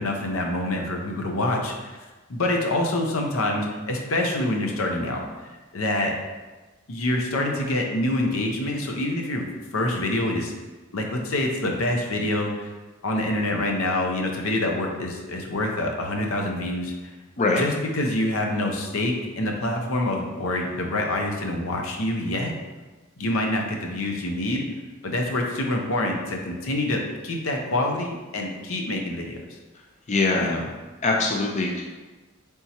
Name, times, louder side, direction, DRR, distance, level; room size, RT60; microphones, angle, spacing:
voice 1, 0.0-2.0 2.3-5.2 5.7-6.1 6.9-9.5 9.7-10.5 10.9-12.7 13.0-17.1 17.6-22.5 23.2-24.6 25.0-29.4 30.3-30.6, left 1 dB, 80° left, 1 dB, 0.6 m, -26 dB
voice 2, 30.1-30.6 31.0-31.8, left 3 dB, 35° left, -1 dB, 0.4 m, -22 dB
4.1 x 3.5 x 2.8 m, 1.2 s
head